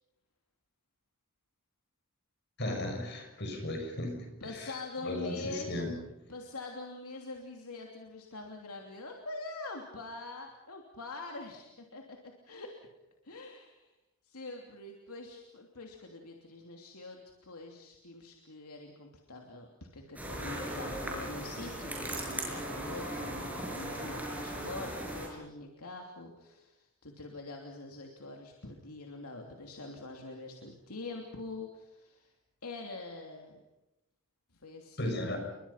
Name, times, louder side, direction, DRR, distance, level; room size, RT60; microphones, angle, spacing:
voice 1, 2.6-4.8 5.0-5.9 35.0-35.4, left 1 dB, 50° left, 4 dB, 6.8 m, -36 dB
voice 2, 4.4-5.8 6.3-12.7 13.2-13.9 14.2-19.7 19.9-32.3 32.6-33.6 34.5-35.5, left 2 dB, 85° left, 2 dB, 3.0 m, -44 dB
sound 1, 20.2-25.3, right 1 dB, 5° right, 6.4 m, -38 dB
30.0 x 23.5 x 5.8 m, 0.95 s
head